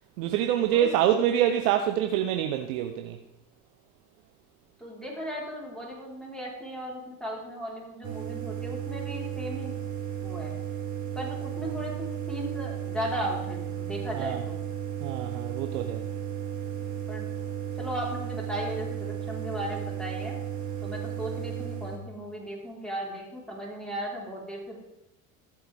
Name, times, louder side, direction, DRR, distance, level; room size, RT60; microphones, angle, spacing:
voice 1, 0.2-3.2 14.2-14.4 15.0-16.0, right 10 dB, 75° right, 6 dB, 0.9 m, -26 dB
voice 2, 4.8-9.8 10.2-10.5 11.1-14.6 17.1-17.3 17.8-20.4 20.8-24.8, equal, ahead, -3 dB, 4.3 m, -36 dB
sound 1, 8.0-22.0, right 9 dB, 40° right, 2.4 m, -34 dB
14.0 x 7.9 x 3.5 m, 0.92 s
hypercardioid pair, 75°, 44 cm